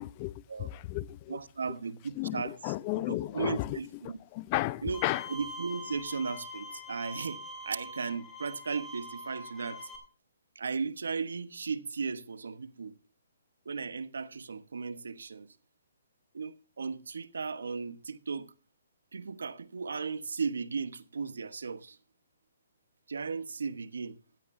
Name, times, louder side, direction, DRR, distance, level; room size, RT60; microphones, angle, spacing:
voice 1, 0.0-1.4 2.2-3.8 4.0-5.3, left 18 dB, 30° left, 0.5 m, -34 dB
voice 2, 1.3-2.7 3.1-4.2 4.8-5.0 5.3-9.9 10.5-12.9 13.6-15.5 16.3-18.5 19.1-22.0 23.1-24.2, right 5 dB, 85° right, 1.2 m, -36 dB
Bowed string instrument, 4.9-10.0, left 2 dB, 10° left, 3.5 m, -44 dB
16.5 x 13.5 x 2.7 m
hypercardioid pair, 150°, 0 cm